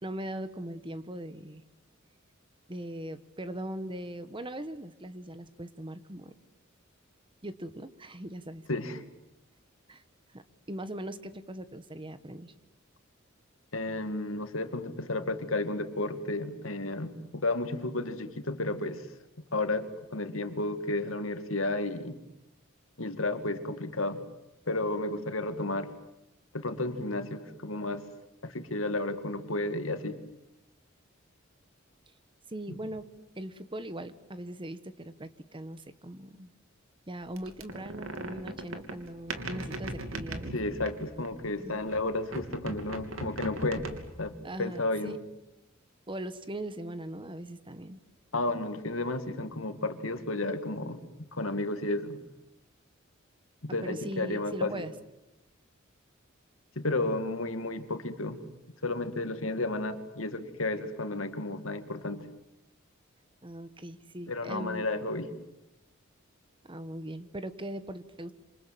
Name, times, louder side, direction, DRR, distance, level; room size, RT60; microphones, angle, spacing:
voice 1, 0.0-1.6 2.7-6.3 7.4-8.6 9.9-10.0 10.3-10.4 10.7-12.5 32.5-33.1 33.3-36.5 37.1-40.5 41.6-41.8 44.4-45.2 46.1-48.0 53.8-54.9 63.4-64.9 66.6-68.3, right 1 dB, 25° right, 12 dB, 1.3 m, -40 dB
voice 2, 8.7-9.0 13.7-19.1 19.5-19.9 20.1-22.2 23.0-24.2 24.7-25.9 26.5-28.0 28.4-30.2 40.5-43.9 44.2-44.3 44.6-45.2 48.3-52.2 53.6-54.9 56.8-58.4 58.8-62.2 64.3-65.3, left 2 dB, 80° left, 8 dB, 2.3 m, -32 dB
sound 1, 37.4-41.5 41.9-44.3, right 2 dB, 75° right, 3.1 m, -39 dB
27.5 x 26.5 x 7.7 m, 0.90 s
head